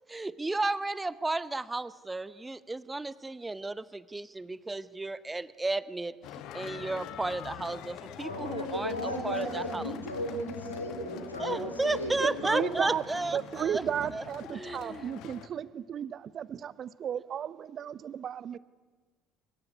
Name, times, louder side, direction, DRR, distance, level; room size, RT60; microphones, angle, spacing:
voice 1, 0.1-6.1 6.5-9.9 11.4-13.8 14.1-15.1, right 2 dB, 15° right, 17 dB, 0.9 m, -33 dB
sound 1, 6.2-15.5, left 10 dB, 55° left, 1.5 m, -44 dB
voice 2, 8.2-12.7, left 1 dB, 85° left, 5 dB, 3.4 m, -35 dB
voice 3, 12.0-13.0 13.3-18.6, right 9 dB, 40° right, 18 dB, 0.8 m, -34 dB
23.5 x 22.0 x 9.6 m, 1.3 s
figure-of-eight pair, 55°, 0 cm